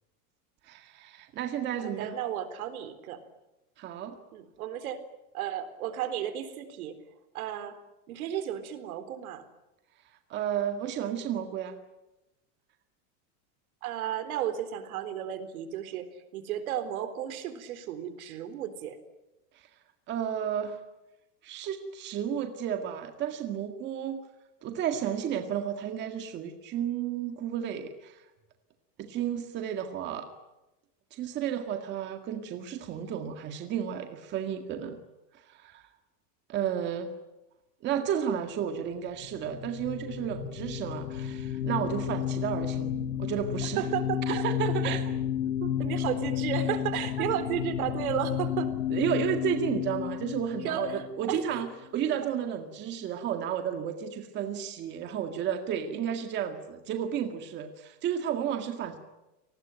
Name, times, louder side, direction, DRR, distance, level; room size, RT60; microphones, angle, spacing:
voice 1, 0.6-2.2 3.8-4.2 10.3-11.8 20.1-20.8 21.4-24.2 24.6-28.2 29.0-30.3 31.1-35.0 35.5-35.8 36.5-37.1 37.8-42.9 43.2-43.9 44.3-45.0 45.6-45.7 48.9-59.0, right 9 dB, 25° right, 6 dB, 1.9 m, -32 dB
voice 2, 1.8-3.2 4.3-5.0 5.3-6.9 7.3-7.7 8.1-9.4 13.8-16.1 16.3-19.0 43.8-44.4 45.8-48.7 50.6-51.0 51.3-51.4, right 9 dB, 70° right, 10 dB, 4.0 m, -33 dB
sound 1, 39.2-51.6, left 9 dB, 75° left, 1.9 m, -32 dB
29.5 x 19.5 x 9.3 m, 0.99 s
supercardioid pair, 175°, 45 cm